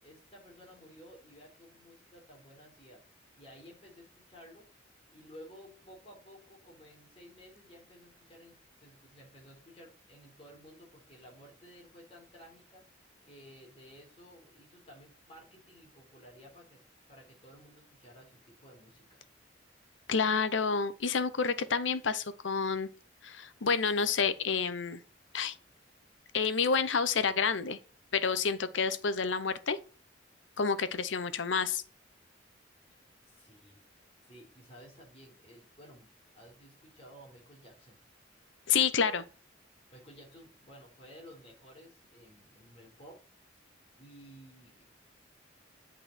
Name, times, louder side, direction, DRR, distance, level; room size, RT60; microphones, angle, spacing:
voice 1, 0.0-3.0 3.4-12.8 13.2-16.8 17.1-19.2 33.2-33.8 34.2-36.1 36.3-38.0 39.9-43.2 43.5-44.8, equal, 30° left, 3.9 m, -55 dB
voice 2, 20.1-22.9 23.2-25.0 25.3-25.6 26.3-27.8 28.1-29.8 30.6-31.8 38.7-39.2, left 5 dB, 80° left, 0.8 m, -29 dB
8.7 x 5.3 x 4.3 m
head